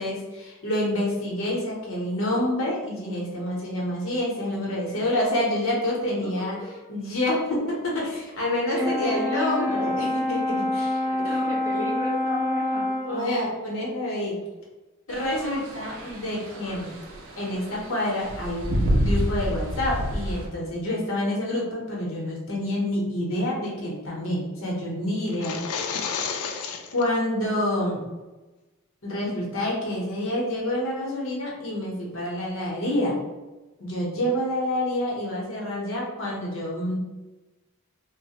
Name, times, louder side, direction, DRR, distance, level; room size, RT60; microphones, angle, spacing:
voice 1, 0.0-6.6 6.9-11.5 13.0-14.4 15.1-16.9 17.4-25.6 26.9-28.1 29.0-33.2 33.8-37.0, left 1 dB, 65° left, -4 dB, 0.8 m, -28 dB
voice 2, 6.2-6.9 8.7-10.0 11.0-13.5, left 1 dB, 15° right, -9 dB, 1.1 m, -35 dB
Brass instrument, 8.8-13.2, left 1 dB, ahead, 0.5 m, -26 dB
sound 1, 15.1-20.5, equal, 60° right, 0.5 m, -29 dB
sound 2, 25.3-27.1, left 6 dB, 80° left, 0.3 m, -31 dB
3.2 x 2.1 x 2.8 m, 1.1 s
head